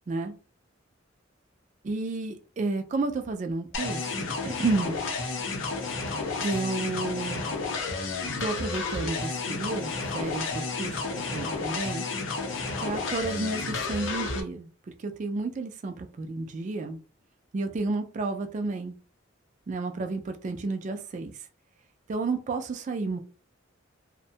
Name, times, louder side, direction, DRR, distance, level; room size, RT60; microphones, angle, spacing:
voice 1, 1.8-5.0 6.4-7.4 8.4-12.1 12.8-14.7 15.0-17.0 17.5-19.0 19.7-21.3 22.1-23.2, right 3 dB, 40° right, 6 dB, 0.3 m, -31 dB
sound 1, 3.7-14.4, left 4 dB, 70° left, 0.6 m, -31 dB
2.6 x 2.1 x 2.7 m, 0.36 s
head